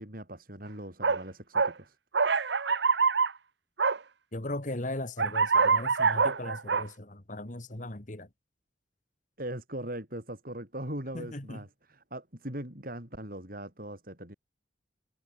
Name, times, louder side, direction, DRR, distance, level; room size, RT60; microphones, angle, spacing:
voice 1, 0.0-2.0 9.4-14.3, right 1 dB, 50° right, 6.2 m, -40 dB
sound 1, 1.0-1.2 1.6-1.7 2.1-3.3 3.8-4.0 5.2-6.8, right 5 dB, 70° right, 1.0 m, -25 dB
voice 2, 4.3-8.3 11.1-11.6, left 1 dB, 45° left, 2.0 m, -38 dB
head